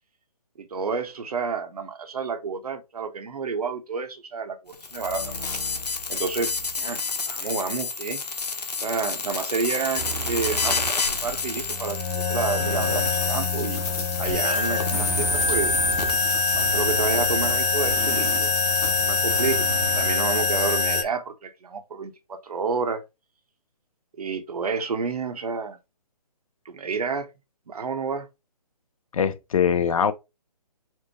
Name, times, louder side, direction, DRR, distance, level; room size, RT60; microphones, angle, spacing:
voice 1, 0.6-5.4 6.1-7.0 7.3-8.2 8.8-13.8 14.2-15.7 16.6-18.5 18.9-19.7 20.0-23.0 24.2-25.8 26.7-27.3 27.7-28.3, right 5 dB, 65° right, 0.7 m, -30 dB
sound 1, 4.7-21.0, left 4 dB, 80° left, 0.9 m, -26 dB
sound 2, 10.0-11.2 12.6-13.2 14.9-18.5 19.3-20.8, right 5 dB, 20° right, 0.6 m, -35 dB
sound 3, 12.7-19.7, left 6 dB, 25° left, 0.7 m, -33 dB
voice 2, 29.1-30.1, left 7 dB, 55° left, 0.6 m, -22 dB
4.5 x 2.0 x 4.2 m
figure-of-eight pair, 145°, 21 cm